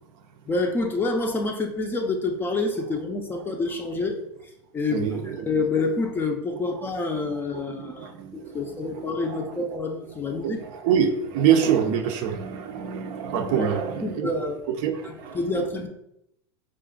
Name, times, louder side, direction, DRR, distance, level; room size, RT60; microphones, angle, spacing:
voice 1, 0.5-4.2 4.7-10.6 13.6-13.7 14.0-14.6 15.0-15.9, left 3 dB, 15° left, 3 dB, 0.5 m, -27 dB
voice 2, 4.9-5.5 7.5-8.6 8.9-9.0 9.3-9.4 10.3-14.3 14.8-15.4, right 8 dB, 50° right, 6 dB, 0.6 m, -25 dB
4.8 x 2.5 x 3.7 m, 0.80 s
supercardioid pair, 135°, 15 cm